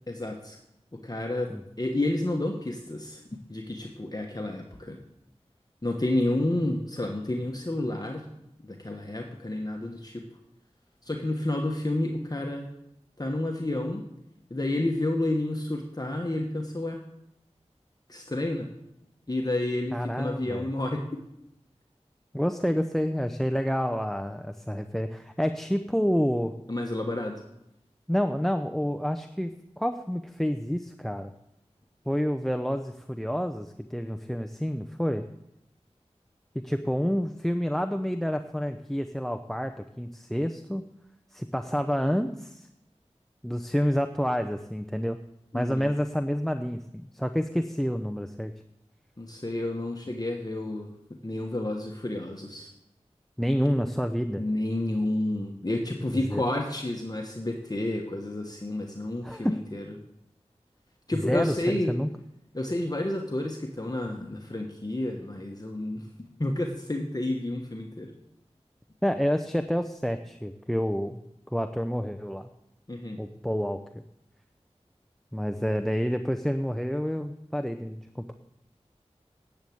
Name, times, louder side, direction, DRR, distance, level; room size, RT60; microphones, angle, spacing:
voice 1, 0.1-0.6 0.9-1.5 1.8-3.2 3.5-5.0 5.8-8.3 8.6-10.2 11.0-12.7 13.2-14.0 14.5-17.0 18.1-18.7 19.3-21.1 26.7-27.4 45.5-45.9 49.2-50.9 51.2-52.7 54.4-59.8 61.1-61.9 62.5-66.0 66.4-68.1 72.9-73.2, left 1 dB, 35° left, 2 dB, 1.3 m, -30 dB
voice 2, 19.9-20.7 22.3-26.5 28.1-31.3 32.1-35.3 36.5-40.9 41.3-42.7 43.4-45.2 45.5-48.5 53.4-54.4 56.1-56.4 59.2-59.6 61.1-62.1 69.0-71.2 71.5-72.5 73.2-74.0 75.3-78.3, equal, 5° left, 9 dB, 0.6 m, -28 dB
10.5 x 7.1 x 7.8 m, 0.82 s
wide cardioid pair, 40°, 12 cm